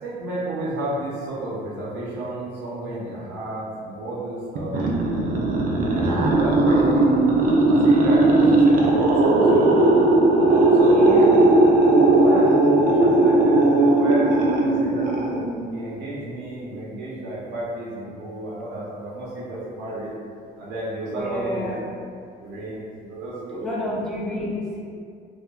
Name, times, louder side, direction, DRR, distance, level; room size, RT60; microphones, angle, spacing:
voice 1, 0.0-5.0 5.9-7.3 7.7-9.9 10.7-11.2 12.1-15.4 15.7-20.1 20.6-21.8 22.4-24.1, right 1 dB, 85° right, -7 dB, 0.8 m, -32 dB
sound 1, 4.6-15.7, right 2 dB, 55° right, 0.4 m, -17 dB
voice 2, 10.9-11.3 21.1-21.8 23.5-24.8, equal, 5° left, -7 dB, 0.5 m, -29 dB
2.7 x 2.3 x 2.3 m, 2.3 s
cardioid pair, 110°, 17 cm